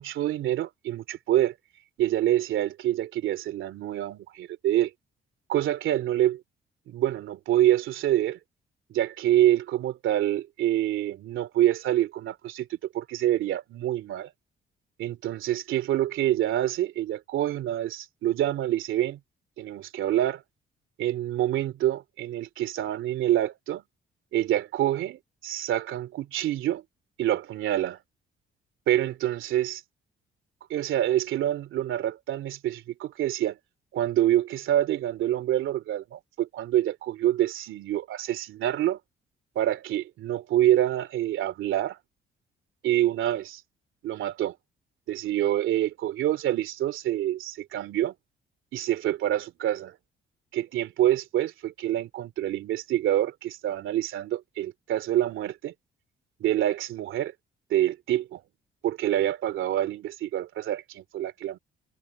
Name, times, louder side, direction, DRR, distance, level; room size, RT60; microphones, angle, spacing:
voice 1, 0.0-1.5 2.0-4.9 5.5-6.4 6.9-8.4 8.9-14.3 15.0-19.2 19.6-20.4 21.0-23.8 24.3-26.8 27.2-28.0 28.9-29.8 30.7-33.6 33.9-39.0 39.5-42.0 42.8-43.6 44.0-44.6 45.1-48.1 48.7-49.9 50.5-55.7 56.4-57.3 57.7-58.4 58.8-61.6, right 13 dB, 80° right, 2.8 m, -26 dB
cardioid pair, 90°, 20 cm